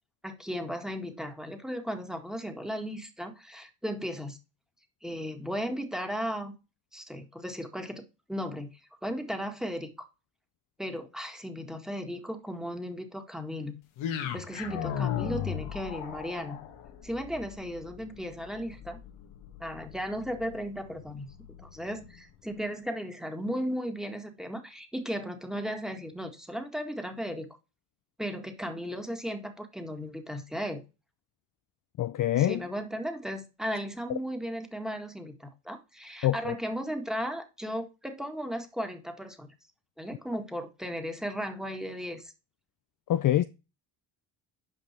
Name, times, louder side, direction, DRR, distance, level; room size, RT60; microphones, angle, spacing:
voice 1, 0.2-4.4 5.0-6.5 6.9-10.1 10.8-13.8 14.1-16.6 17.0-19.0 19.6-21.3 21.6-27.5 28.2-30.8 32.4-39.5 40.0-42.3, equal, ahead, 1.8 m, -36 dB
sound 1, 14.0-22.2, left 9 dB, 85° left, 1.8 m, -37 dB
voice 2, 32.0-32.6 36.2-36.5 43.1-43.4, left 13 dB, 45° left, 0.5 m, -25 dB
8.9 x 5.3 x 4.5 m
cardioid pair, 100°, 46 cm